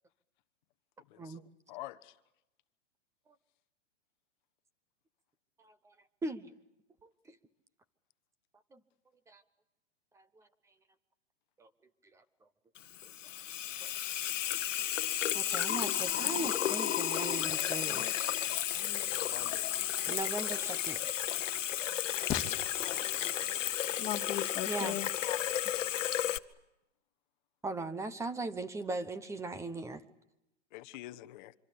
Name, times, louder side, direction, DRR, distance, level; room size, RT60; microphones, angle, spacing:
voice 1, 1.1-2.1 19.0-19.7 22.2-22.3 22.8-23.6 25.2-25.4 30.7-31.5, left 17 dB, 40° left, 1.1 m, -47 dB
voice 2, 5.6-5.9 6.2-6.5 7.0-7.4 8.7-8.8 9.3-9.4 10.1-10.5 11.6-11.7 12.1-12.2 13.8-13.9 15.3-18.3 20.1-21.0 24.7-25.0 27.6-30.0, right 2 dB, 10° right, 1.0 m, -39 dB
Water tap faucet / Sink (filling or washing), 12.8-26.4, left 11 dB, 85° left, 1.1 m, -33 dB
voice 3, 17.6-18.1 18.7-20.1 22.3-25.1, left 11 dB, 15° left, 2.2 m, -41 dB
26.0 x 25.0 x 8.4 m
hypercardioid pair, 150°, 37 cm